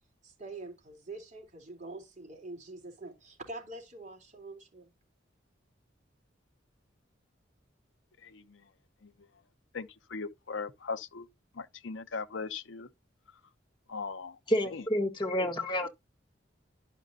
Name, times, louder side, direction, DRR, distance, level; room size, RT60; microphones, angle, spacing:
voice 1, 0.2-4.9, right 2 dB, 40° right, 3.8 m, -45 dB
voice 2, 8.2-8.6 9.0-9.1 9.7-11.3 11.6-12.9 13.9-14.4 14.7-14.8, left 4 dB, 75° left, 0.8 m, -39 dB
voice 3, 14.5-15.9, equal, 25° left, 1.8 m, -29 dB
11.5 x 5.8 x 2.8 m
head